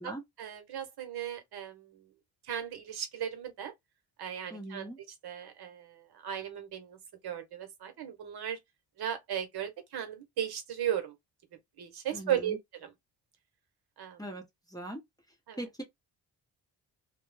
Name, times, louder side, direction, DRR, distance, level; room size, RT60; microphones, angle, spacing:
voice 1, 0.4-2.1 2.4-3.7 4.2-4.9 5.2-8.6 9.0-11.1 11.8-12.9 14.0-14.2 15.5-15.6, right 10 dB, 70° right, 1.0 m, -36 dB
voice 2, 4.5-5.0 12.1-12.6 14.2-14.4 14.7-15.0 15.6-15.8, right 1 dB, 10° left, 0.9 m, -40 dB
2.2 x 2.0 x 3.2 m
cardioid pair, 70°, 40 cm